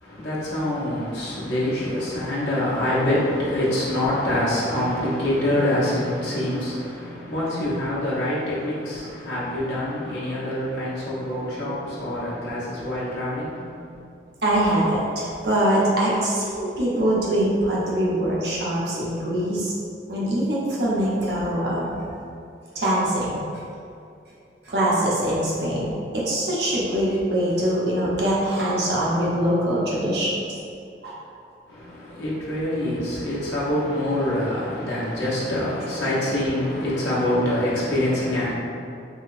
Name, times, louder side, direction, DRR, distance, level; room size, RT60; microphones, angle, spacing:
voice 1, 0.0-14.0 31.7-38.5, left 1 dB, 85° left, -8 dB, 0.8 m, -25 dB
voice 2, 14.4-19.7 20.1-22.0 22.7-23.5 24.6-30.3 31.0-31.1, right 1 dB, 70° right, -6 dB, 0.8 m, -23 dB
3.5 x 2.8 x 2.5 m, 2.4 s
head